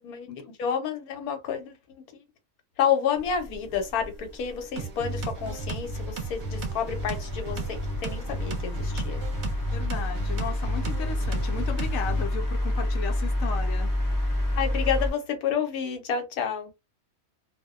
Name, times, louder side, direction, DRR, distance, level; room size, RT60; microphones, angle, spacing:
voice 1, 0.0-2.0 2.8-9.2 14.6-16.7, left 7 dB, 90° left, 1.2 m, -30 dB
sound 1, 3.1-15.1, left 1 dB, 20° left, 0.6 m, -30 dB
sound 2, 4.8-12.3, right 2 dB, 60° right, 0.9 m, -34 dB
voice 2, 9.7-13.9, left 7 dB, 70° left, 0.9 m, -35 dB
2.6 x 2.1 x 2.4 m
omnidirectional pair, 1.5 m